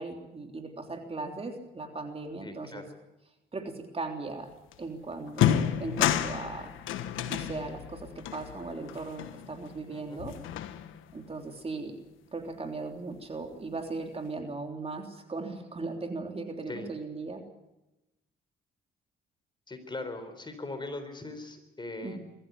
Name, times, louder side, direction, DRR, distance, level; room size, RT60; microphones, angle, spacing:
voice 1, 0.0-2.8 3.5-4.5 4.8-6.7 7.3-10.4 11.1-12.0 12.3-17.4 22.0-22.2, right 3 dB, 30° right, 4 dB, 3.4 m, -38 dB
voice 2, 2.4-2.9 9.9-10.2 16.7-16.9 19.7-22.2, left 2 dB, 25° left, 8 dB, 4.1 m, -40 dB
sound 1, 4.7-4.8 5.3-9.9 10.2-11.2, left 10 dB, 85° left, 1.4 m, -31 dB
22.5 x 15.0 x 9.6 m, 0.97 s
cardioid pair, 90°, 20 cm